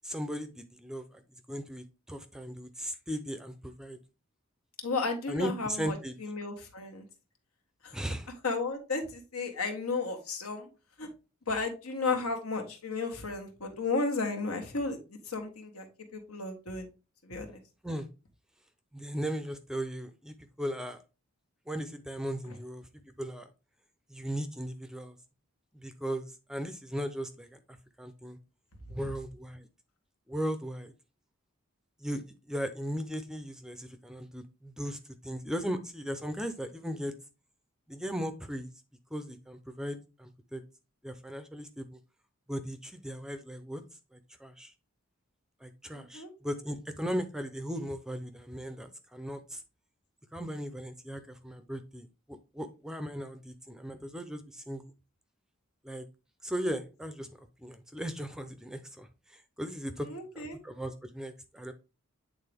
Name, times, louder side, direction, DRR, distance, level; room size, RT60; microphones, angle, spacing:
voice 1, 0.0-1.2 1.5-4.0 5.3-6.2 7.9-8.3 17.8-18.1 18.9-21.0 21.7-23.5 24.1-25.2 25.7-28.4 28.9-29.7 30.3-30.9 32.0-37.1 37.9-38.7 39.1-40.6 41.0-42.0 42.5-43.8 44.1-44.7 45.6-49.6 50.3-54.8 55.8-56.1 56.4-60.1 60.3-61.7, equal, 5° right, 9 dB, 0.4 m, -37 dB
voice 2, 4.8-7.0 7.8-7.9 8.4-10.7 11.0-11.1 11.5-15.0 15.3-15.9 16.1-16.9 17.2-17.6 45.9-46.3 60.0-60.6, left 3 dB, 85° left, 4 dB, 1.6 m, -33 dB
8.7 x 3.7 x 3.4 m, 0.31 s
head